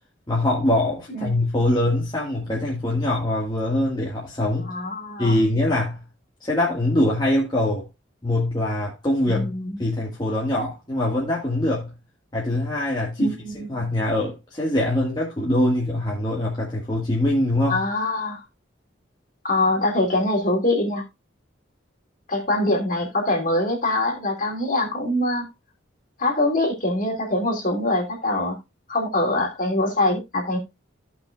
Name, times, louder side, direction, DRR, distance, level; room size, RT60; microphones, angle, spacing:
voice 1, 0.3-4.7 5.2-6.0 6.4-7.9 8.2-9.5 9.8-11.9 12.3-17.8, left 1 dB, 20° left, 1.7 m, -23 dB
voice 2, 4.6-5.4 9.3-9.8 13.2-13.7 17.7-18.4 19.4-21.0 22.3-25.5 26.2-28.6 28.9-30.6, left 1 dB, 45° left, 2.9 m, -23 dB
15.5 x 5.8 x 2.4 m
head